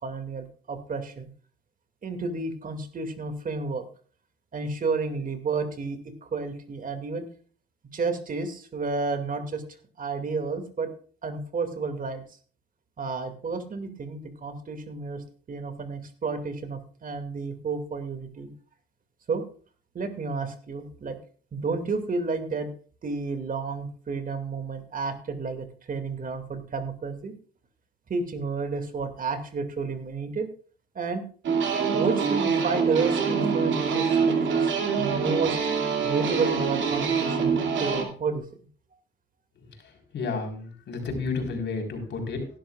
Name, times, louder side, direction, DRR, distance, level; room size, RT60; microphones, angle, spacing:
voice 1, 0.0-1.3 2.0-3.9 4.5-7.3 7.9-9.6 10.0-10.9 11.2-12.2 13.0-18.5 19.3-19.4 19.9-21.2 21.5-22.7 23.0-27.3 28.1-30.5 30.9-31.2 31.9-35.6 36.0-37.5 37.8-38.5, right 4 dB, 45° right, 7 dB, 2.3 m, -31 dB
sound 1, 31.4-38.0, right 6 dB, 70° right, 2.4 m, -25 dB
voice 2, 40.1-42.6, left 4 dB, 65° left, 2 dB, 4.2 m, -31 dB
17.0 x 11.5 x 2.4 m, 0.40 s
cardioid pair, 90°, 20 cm